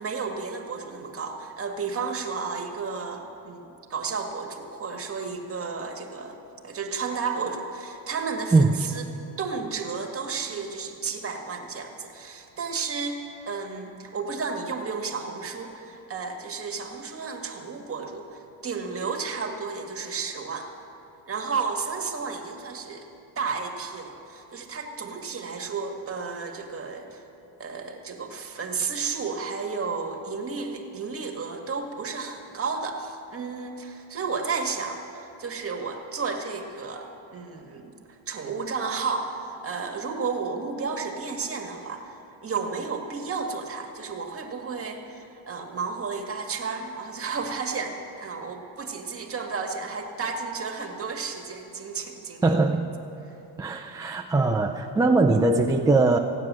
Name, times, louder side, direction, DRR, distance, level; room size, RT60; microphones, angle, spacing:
voice 1, 0.0-6.4 6.6-9.0 9.4-13.2 13.5-20.7 21.3-23.1 23.4-27.2 27.6-52.6 53.3-53.4, right 5 dB, 25° right, 2 dB, 1.8 m, -32 dB
voice 2, 8.5-8.9 52.4-52.9 53.6-56.2, right 3 dB, 10° right, 0 dB, 0.3 m, -21 dB
15.5 x 9.4 x 7.5 m, 2.9 s
cardioid pair, 110°, 49 cm